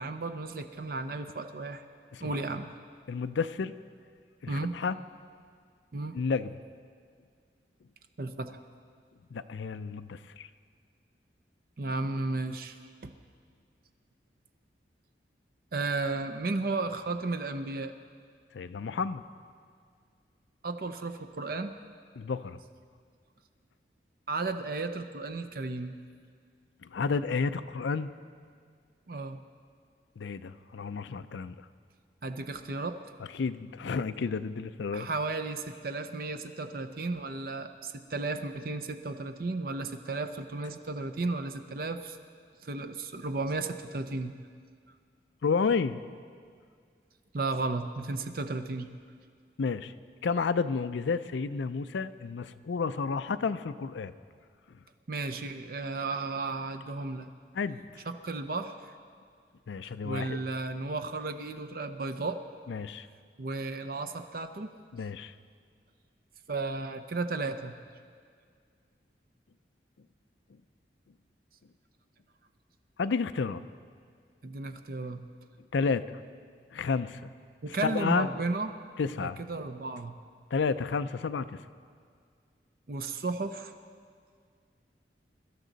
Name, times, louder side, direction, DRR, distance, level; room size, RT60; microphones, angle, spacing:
voice 1, 0.0-1.8 2.2-2.7 4.5-4.8 5.9-6.2 8.2-8.6 11.8-13.1 15.7-17.9 20.6-21.7 24.3-25.9 29.1-29.4 32.2-33.0 34.9-42.2 42.6-44.4 47.3-48.9 55.1-57.3 58.1-58.9 60.0-62.4 63.4-64.7 66.5-67.7 74.4-75.2 77.6-78.7 79.2-80.2 82.9-83.7, right 3 dB, 50° right, 8 dB, 0.6 m, -34 dB
voice 2, 3.1-3.7 4.4-5.0 6.1-6.5 9.3-10.5 18.5-19.2 22.2-22.6 26.8-28.1 30.2-31.5 33.3-35.1 45.4-46.0 49.6-49.9 50.2-54.1 57.5-57.8 59.7-60.4 62.7-63.1 64.9-65.3 73.0-73.6 75.7-76.1 76.7-77.3 77.8-78.3 79.0-79.4 80.5-81.6, left 5 dB, 80° left, 12 dB, 0.4 m, -31 dB
23.0 x 13.0 x 4.0 m, 2.1 s
head